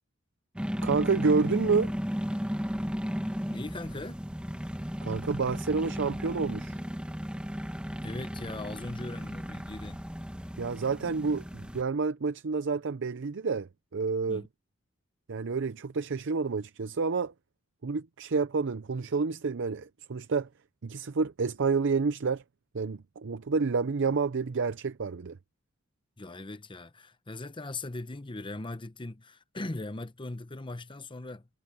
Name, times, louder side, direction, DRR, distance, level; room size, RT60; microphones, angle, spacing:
sound 1, 0.6-11.8, equal, 5° right, 1.5 m, -35 dB
voice 1, 0.8-1.9 5.0-6.8 10.6-14.4 15.3-17.3 17.8-20.5 20.8-22.4 22.7-25.4, right 4 dB, 60° right, 0.6 m, -29 dB
voice 2, 3.5-4.2 8.0-10.0 14.3-14.5 26.2-31.5, left 2 dB, 25° left, 0.9 m, -39 dB
head